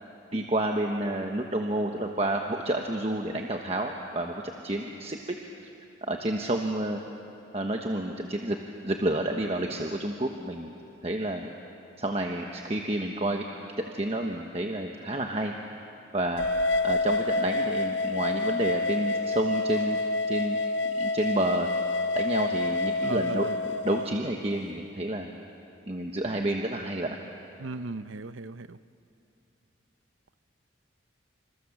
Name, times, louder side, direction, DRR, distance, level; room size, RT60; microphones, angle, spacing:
voice 1, 0.3-5.4 6.0-7.0 7.5-8.6 8.8-10.7 11.0-11.5 12.0-13.4 13.8-15.5 16.1-16.4 16.8-20.0 20.3-20.6 21.0-21.7 22.1-23.5 23.8-25.3 25.9-27.2, right 1 dB, 30° right, 2 dB, 1.2 m, -29 dB
sound 1, 16.4-24.1, left 2 dB, 70° left, 0.8 m, -28 dB
voice 2, 23.0-23.6 27.6-28.8, right 3 dB, 85° right, 13 dB, 0.7 m, -36 dB
28.0 x 26.5 x 7.3 m, 2.8 s
head